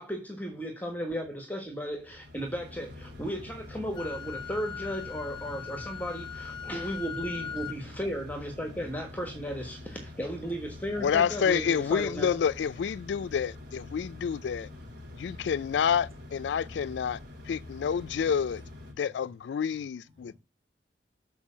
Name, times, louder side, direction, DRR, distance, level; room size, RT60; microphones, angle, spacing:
voice 1, 0.0-12.4, equal, 10° left, 1.3 m, -35 dB
sound 1, 1.9-18.9, left 2 dB, 65° right, 3.5 m, -46 dB
Wind instrument woodwind instrument, 3.9-7.8, left 7 dB, 25° left, 0.6 m, -40 dB
voice 2, 11.0-14.7 15.2-17.2 17.5-18.6 19.0-20.4, left 7 dB, 75° left, 0.3 m, -28 dB
voice 3, 13.9-15.8 16.7-16.9 18.9-19.3 19.7-20.4, left 2 dB, 30° right, 5.1 m, -57 dB
7.2 x 4.6 x 6.1 m
head